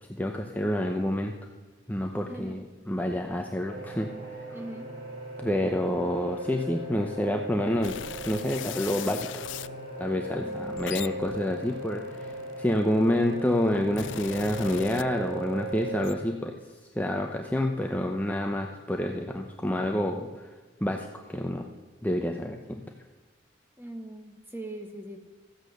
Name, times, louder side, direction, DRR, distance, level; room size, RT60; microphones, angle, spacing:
voice 1, 0.1-1.3 1.9-4.6 5.4-8.0 8.2-9.3 10.0-20.5 20.8-21.7 22.0-22.8, left 1 dB, 10° left, 2 dB, 0.7 m, -28 dB
voice 2, 2.3-2.6 4.5-4.9 10.4-10.8 23.8-25.3, right 1 dB, 10° right, 4 dB, 1.4 m, -41 dB
sound 1, 3.6-16.0, right 1 dB, 75° right, 5.3 m, -38 dB
sound 2, 7.8-9.7 10.5-12.8 13.5-15.5 15.8-16.1, left 10 dB, 75° left, 0.4 m, -40 dB
14.5 x 8.9 x 6.6 m, 1.3 s
head